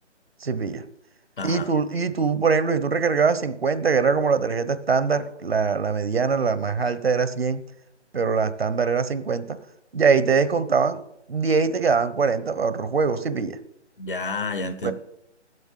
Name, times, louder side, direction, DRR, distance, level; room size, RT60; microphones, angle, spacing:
voice 1, 0.4-0.8 1.4-7.6 8.1-9.6 9.9-11.0 11.3-13.6 14.8-14.9, right 5 dB, 55° right, 1.2 m, -22 dB
voice 2, 1.4-1.7 14.0-14.9, left 3 dB, 45° left, 1.3 m, -30 dB
13.0 x 8.1 x 7.5 m
figure-of-eight pair, 165°, 35 cm